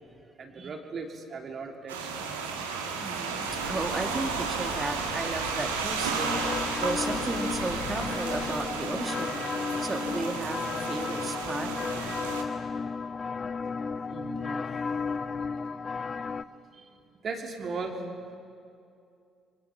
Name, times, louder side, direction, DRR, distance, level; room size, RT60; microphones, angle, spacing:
voice 1, 0.4-2.1 14.1-14.6 16.7-16.9 17.2-18.4, right 4 dB, 45° right, 2 dB, 3.0 m, -37 dB
sound 1, 1.9-12.4, right 5 dB, 80° right, 2.1 m, -33 dB
voice 2, 3.0-9.4 9.8-11.7, right 2 dB, 25° right, 5 dB, 2.5 m, -34 dB
sound 2, 3.5-8.6, left 5 dB, 80° left, 2.7 m, -42 dB
sound 3, 6.2-16.4, left 5 dB, 35° left, 0.6 m, -33 dB
29.0 x 24.0 x 6.0 m, 2.5 s
figure-of-eight pair, 50°, 0 cm